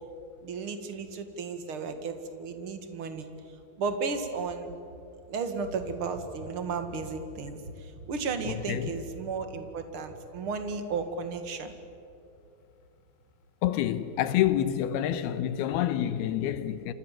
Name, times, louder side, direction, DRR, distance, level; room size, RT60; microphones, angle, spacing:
voice 1, 0.4-3.3 3.8-4.7 5.3-11.7, right 4 dB, 45° right, 2.2 m, -34 dB
voice 2, 8.4-8.9 13.6-16.9, left 11 dB, 85° left, 3.0 m, -28 dB
29.5 x 25.5 x 7.6 m
omnidirectional pair, 4.4 m